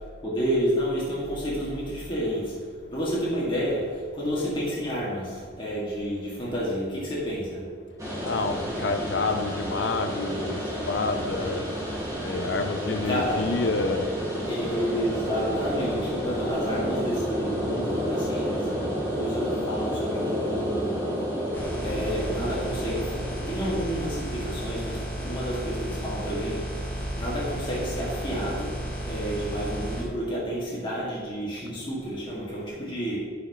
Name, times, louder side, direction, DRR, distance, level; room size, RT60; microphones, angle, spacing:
voice 1, 0.2-7.6 13.0-13.4 14.5-18.7 19.1-21.0 21.8-23.1 23.5-26.9 27.2-28.7 29.0-33.2, equal, 25° left, -7 dB, 2.2 m, -30 dB
sound 1, 8.0-25.6, equal, 15° right, 2.1 m, -31 dB
voice 2, 8.2-11.7 12.2-14.1, left 3 dB, 70° left, 6 dB, 0.6 m, -28 dB
sound 2, 21.5-30.0, right 1 dB, 10° left, 1.9 m, -33 dB
15.5 x 5.8 x 3.2 m, 2.1 s
head